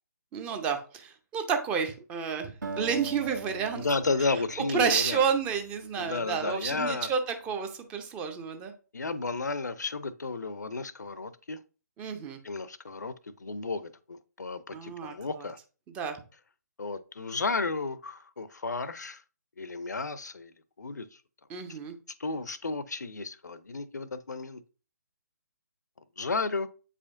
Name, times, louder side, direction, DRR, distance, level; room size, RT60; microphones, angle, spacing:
voice 1, 0.3-3.9 4.7-8.7 12.0-12.4 14.7-15.5 15.9-16.2 21.5-21.9, right 6 dB, 10° right, 0.6 m, -30 dB
Acoustic guitar, 2.6-7.1, right 3 dB, 65° right, 1.4 m, -42 dB
voice 2, 3.7-5.2 6.0-7.1 8.9-11.6 12.4-15.6 16.8-19.2 19.6-21.2 21.7-21.8 22.2-24.6 26.2-26.7, left 3 dB, 65° left, 0.6 m, -33 dB
8.2 x 5.0 x 2.5 m
figure-of-eight pair, 140°, 10 cm